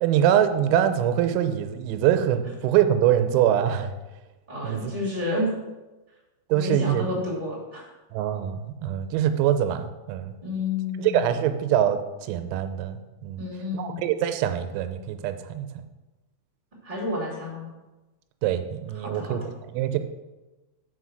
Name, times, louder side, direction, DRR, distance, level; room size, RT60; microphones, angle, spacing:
voice 1, 0.0-3.9 4.6-5.0 6.5-7.1 8.1-10.3 11.0-12.0 12.3-13.4 13.7-15.8 18.4-19.4 19.7-20.0, right 10 dB, 90° right, 8 dB, 3.3 m, -24 dB
voice 2, 4.5-5.5 6.5-7.9 10.4-11.3 13.4-14.1 16.8-17.6 19.0-19.4, left 2 dB, 20° right, -7 dB, 1.3 m, -30 dB
5.9 x 5.6 x 6.2 m, 1.1 s
omnidirectional pair, 6.0 m